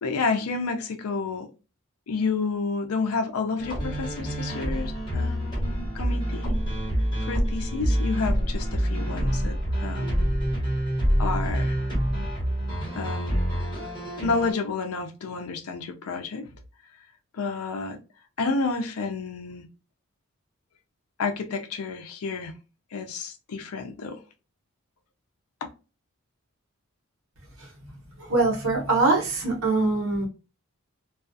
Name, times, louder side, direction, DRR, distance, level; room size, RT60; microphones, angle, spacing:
voice 1, 0.0-1.5 2.1-6.5 7.2-10.3 11.2-11.8 12.9-13.5 14.2-16.5 17.3-18.0 18.4-19.7 21.2-22.5 22.9-24.2 25.6-25.7, left 4 dB, 80° left, 0.5 m, -30 dB
sound 1, 3.6-14.5, equal, 20° left, 1.1 m, -27 dB
voice 2, 27.6-30.3, right 3 dB, 70° right, 1.0 m, -24 dB
2.3 x 2.3 x 2.5 m
head